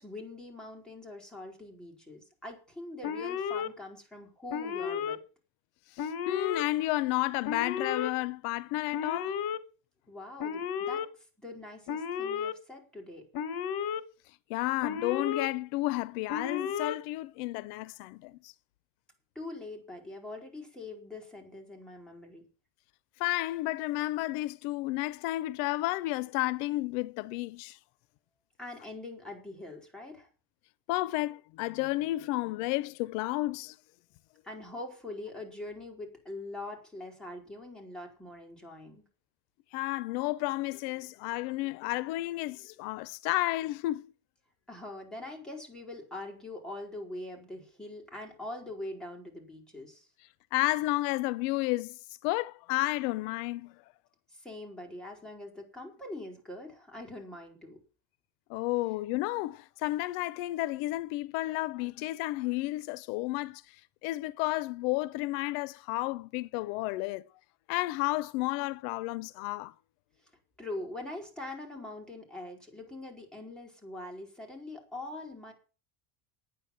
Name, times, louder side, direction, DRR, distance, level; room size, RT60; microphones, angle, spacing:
voice 1, 0.0-5.2 10.1-13.3 19.3-22.5 28.6-30.3 34.4-39.0 44.7-50.1 54.3-57.8 70.6-75.5, left 2 dB, ahead, 4.7 m, -43 dB
Alarm, 3.0-3.7 4.5-5.2 6.0-6.6 7.4-8.1 8.9-9.6 10.4-11.1 11.9-12.5 13.3-14.0 14.8-15.5 16.3-17.0, left 7 dB, 55° left, 1.3 m, -33 dB
voice 2, 5.9-9.4 14.5-18.5 23.2-27.8 30.9-33.8 39.7-44.1 50.5-53.7 58.5-63.8 64.0-67.2 67.7-69.7, left 18 dB, 75° left, 0.7 m, -32 dB
10.0 x 9.5 x 7.3 m
cardioid pair, 145°, 43 cm